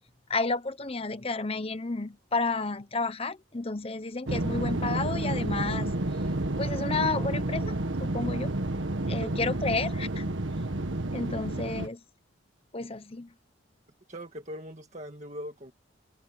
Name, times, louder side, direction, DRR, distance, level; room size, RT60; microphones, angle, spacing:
voice 1, 0.3-6.0 6.6-8.5 9.1-10.2 11.1-12.0 12.7-13.3, left 3 dB, 30° left, 1.0 m, -31 dB
sound 1, 4.3-11.9, right 1 dB, 85° right, 1.6 m, -30 dB
voice 2, 14.1-15.7, equal, 40° right, 1.8 m, -41 dB
head